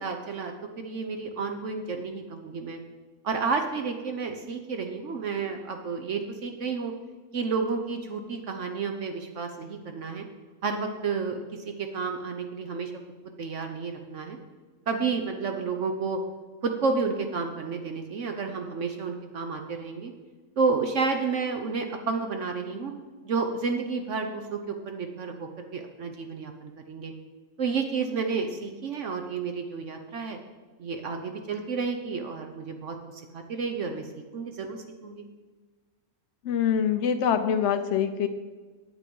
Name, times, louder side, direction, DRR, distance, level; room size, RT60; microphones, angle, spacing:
voice 1, 0.0-2.8 3.2-6.9 7.3-10.2 10.6-12.9 13.4-14.4 14.9-16.2 16.6-20.1 20.6-22.9 23.2-27.1 27.6-30.4 30.8-34.1 34.3-35.2, right 4 dB, 60° right, 5 dB, 1.1 m, -31 dB
voice 2, 36.4-38.3, left 8 dB, 65° left, 8 dB, 0.8 m, -24 dB
9.2 x 9.1 x 5.3 m, 1.4 s
omnidirectional pair, 1.5 m